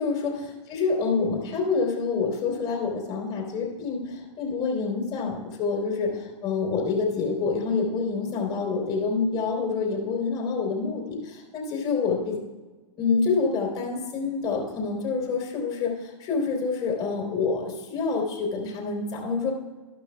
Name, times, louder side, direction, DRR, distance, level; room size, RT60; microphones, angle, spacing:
voice 1, 0.0-12.4 13.0-19.5, left 4 dB, 35° left, -2 dB, 3.6 m, -27 dB
13.5 x 12.0 x 2.3 m, 1.2 s
figure-of-eight pair, 105°, 16 cm